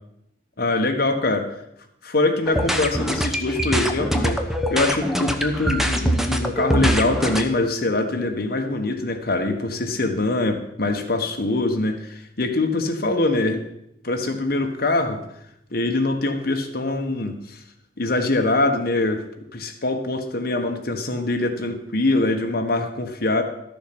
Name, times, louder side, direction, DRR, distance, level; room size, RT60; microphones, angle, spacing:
voice 1, 0.6-1.5 2.0-4.4 4.7-13.6 14.0-15.2 15.7-17.6 18.0-19.2 19.5-23.4, left 2 dB, 60° left, 4 dB, 1.4 m, -23 dB
sound 1, 2.4-7.4, equal, ahead, 0.9 m, -23 dB
13.0 x 7.0 x 6.0 m, 0.78 s
head